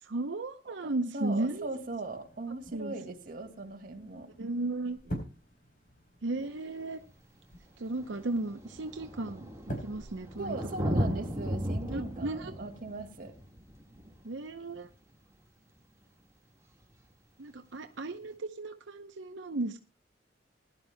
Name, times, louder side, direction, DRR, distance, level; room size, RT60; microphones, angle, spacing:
voice 1, 0.0-1.7 2.5-2.9 4.4-5.2 6.2-7.0 7.8-11.1 11.9-12.5 14.2-14.9 17.4-19.8, right 2 dB, 85° right, 6 dB, 0.8 m, -35 dB
voice 2, 0.8-4.3 10.4-13.3, right 2 dB, 50° right, 3 dB, 2.2 m, -39 dB
sound 1, 1.4-12.3, equal, 50° left, 4.1 m, -47 dB
Thunder, 6.5-6.6 7.5-7.6 7.8-15.2 16.8-16.9, equal, 15° right, 1.7 m, -36 dB
21.0 x 11.5 x 2.2 m, 0.31 s
head